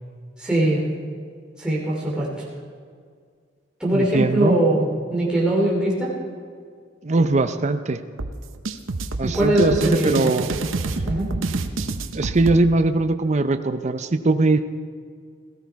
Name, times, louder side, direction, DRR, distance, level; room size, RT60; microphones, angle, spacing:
voice 1, 0.4-0.9 1.6-2.5 3.8-6.1 9.2-10.3 11.0-11.3, right 1 dB, 5° right, -6 dB, 2.7 m, -21 dB
voice 2, 3.9-4.6 7.0-8.0 9.2-10.5 12.1-14.6, right 2 dB, 35° right, 9 dB, 0.6 m, -20 dB
sound 1, 8.2-12.6, right 3 dB, 80° right, 0.8 m, -27 dB
17.5 x 13.5 x 4.6 m, 2.1 s
head